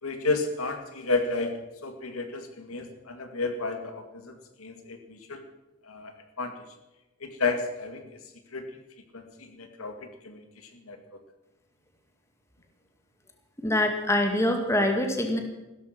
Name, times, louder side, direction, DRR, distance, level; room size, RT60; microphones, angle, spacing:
voice 1, 0.0-5.4 5.8-6.1 6.4-6.5 7.2-8.2 8.5-8.7 9.1-10.4 10.8-11.0, left 3 dB, 85° left, 6 dB, 2.2 m, -32 dB
voice 2, 13.6-15.4, left 1 dB, 15° left, 4 dB, 2.1 m, -24 dB
16.0 x 13.5 x 6.0 m, 1.0 s
head